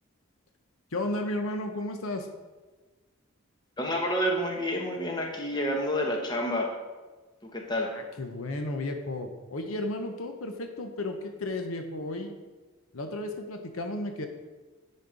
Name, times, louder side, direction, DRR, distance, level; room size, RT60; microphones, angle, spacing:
voice 1, 0.9-2.3 7.7-12.3 12.9-14.3, left 1 dB, 75° left, 5 dB, 0.9 m, -33 dB
voice 2, 3.8-6.7 7.4-7.9, equal, 20° left, 1 dB, 1.1 m, -29 dB
10.5 x 4.3 x 5.0 m, 1.3 s
head